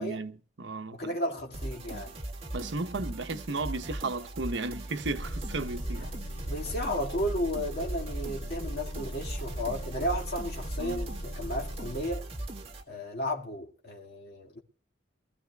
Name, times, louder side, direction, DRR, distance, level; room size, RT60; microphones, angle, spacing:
voice 1, 0.0-1.2 2.5-6.1 10.8-11.0, right 3 dB, 75° right, 0.9 m, -34 dB
voice 2, 0.9-2.1 6.0-6.1 6.5-12.3 12.9-14.6, equal, 55° left, 2.0 m, -34 dB
sound 1, 1.5-12.8, right 1 dB, 30° right, 1.6 m, -39 dB
Engine, 5.2-12.1, equal, 80° left, 1.4 m, -39 dB
24.5 x 14.5 x 2.3 m
head